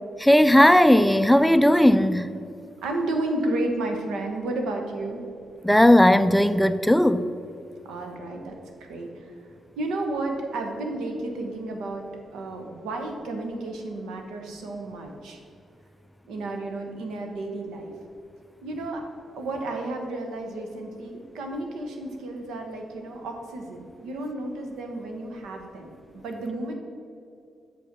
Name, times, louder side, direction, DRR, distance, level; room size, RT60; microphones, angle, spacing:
voice 1, 0.2-2.3 5.6-7.2, left 1 dB, 5° left, 11 dB, 0.3 m, -17 dB
voice 2, 2.8-5.2 7.8-9.3 9.7-12.1 12.3-15.4 16.3-17.9 18.6-19.0 19.3-26.7, right 2 dB, 85° right, 3 dB, 1.0 m, -32 dB
6.4 x 5.1 x 5.3 m, 2.5 s
cardioid pair, 70°, 0 cm